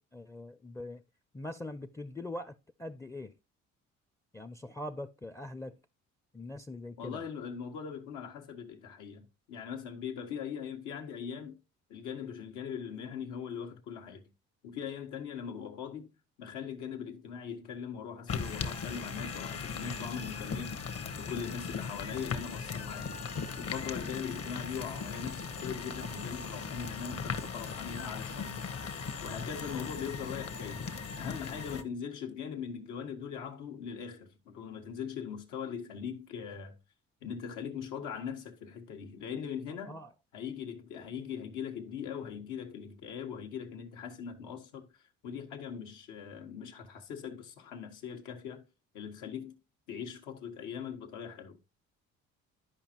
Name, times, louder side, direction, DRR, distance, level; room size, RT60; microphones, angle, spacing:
voice 1, 0.1-1.0 1.3-3.3 4.3-5.8 6.3-7.2 39.9-40.1, left 1 dB, 10° left, 0.4 m, -42 dB
voice 2, 7.0-11.6 11.9-14.2 14.6-16.1 16.4-23.2 23.6-28.6 29.2-30.9 31.2-36.8 37.2-40.0 40.3-44.9 45.2-48.6 48.9-49.6 49.9-51.6, left 7 dB, 90° left, 1.3 m, -41 dB
sound 1, 18.3-31.8, left 5 dB, 50° left, 1.0 m, -38 dB
12.0 x 5.2 x 2.9 m
cardioid pair, 85°, 30 cm